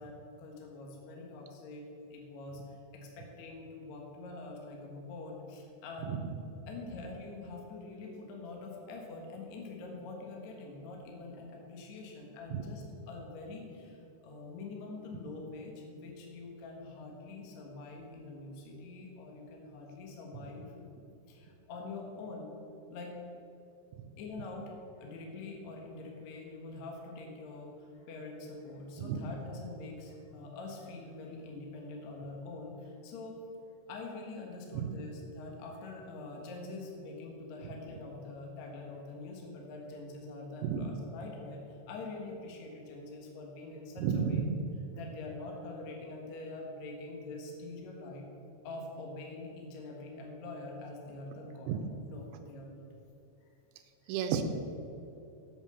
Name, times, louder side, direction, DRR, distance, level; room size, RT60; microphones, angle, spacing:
voice 1, 0.0-6.1 6.7-20.7 21.3-22.6 22.9-23.2 24.2-24.7 25.0-33.4 33.9-44.4 44.9-48.3 48.6-51.8 52.1-52.8 53.4-53.5 54.0-54.1, left 3 dB, 65° left, 0 dB, 1.8 m, -45 dB
voice 2, 44.0-44.5 51.7-51.8 54.1-54.4, right 8 dB, 85° right, 7 dB, 3.0 m, -32 dB
8.2 x 7.3 x 6.9 m, 2.8 s
omnidirectional pair, 5.3 m